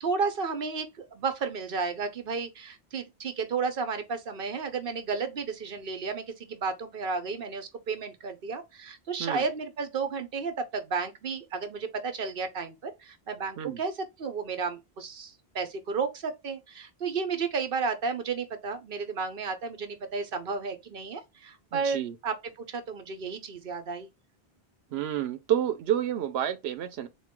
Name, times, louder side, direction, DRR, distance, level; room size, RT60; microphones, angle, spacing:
voice 1, 0.0-13.9 14.2-24.1, right 5 dB, 60° right, 1.0 m, -32 dB
voice 2, 21.7-22.1 24.9-27.1, right 10 dB, 85° right, 0.8 m, -29 dB
3.8 x 3.1 x 3.6 m
omnidirectional pair, 1.0 m